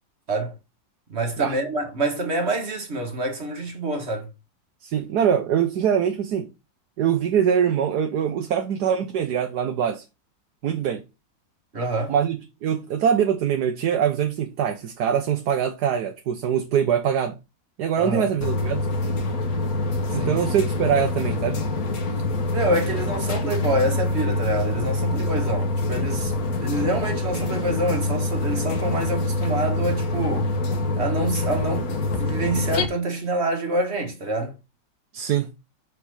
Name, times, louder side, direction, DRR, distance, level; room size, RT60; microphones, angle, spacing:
voice 1, 1.1-4.3 11.7-12.1 18.0-18.3 20.1-20.4 22.5-26.3 26.6-30.5 31.0-34.6, right 2 dB, 35° right, 1.8 m, -26 dB
voice 2, 4.8-6.5 7.0-10.0 10.6-11.0 12.1-17.3 17.8-18.8 20.1-21.6 35.1-35.5, right 8 dB, 65° right, 1.4 m, -23 dB
sound 1, 18.4-32.9, left 2 dB, 55° left, 1.6 m, -25 dB
6.0 x 5.1 x 6.3 m
omnidirectional pair, 2.0 m